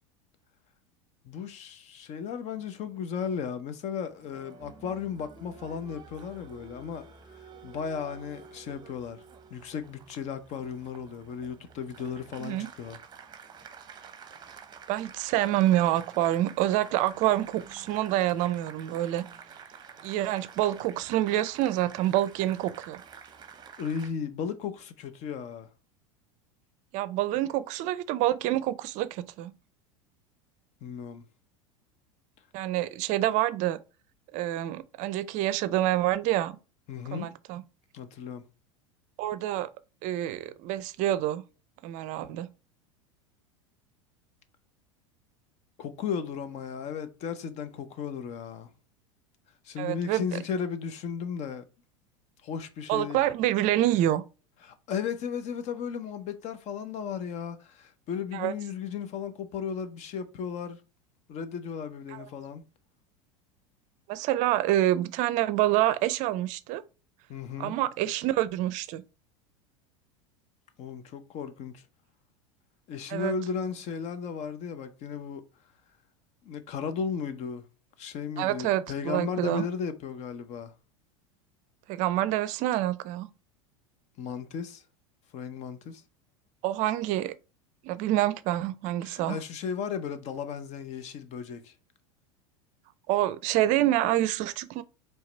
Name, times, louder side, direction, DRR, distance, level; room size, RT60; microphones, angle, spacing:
voice 1, 1.2-7.0 7.3-9.2 9.5-13.0 23.8-25.7 30.8-31.2 36.9-37.3 37.9-38.4 45.8-48.7 49.6-51.6 52.4-53.2 54.6-60.8 61.3-62.6 67.3-67.8 70.8-71.8 72.9-75.4 76.4-77.6 78.0-80.7 84.2-84.8 85.3-86.0 89.0-91.7, left 6 dB, 45° left, 0.8 m, -35 dB
Applause, 4.1-24.1, right 6 dB, 25° right, 0.8 m, -49 dB
voice 2, 14.9-19.2 20.0-23.0 26.9-29.5 32.5-33.8 34.3-36.6 37.1-37.6 39.2-39.7 40.0-41.4 41.8-42.5 49.8-50.4 52.9-54.2 58.3-58.5 62.1-62.3 64.1-66.8 67.6-69.0 73.1-73.3 78.4-79.7 81.9-83.3 86.6-87.3 87.8-89.4 93.1-94.8, right 14 dB, 50° right, 0.5 m, -27 dB
4.7 x 3.2 x 3.3 m
hypercardioid pair, 85°, 16 cm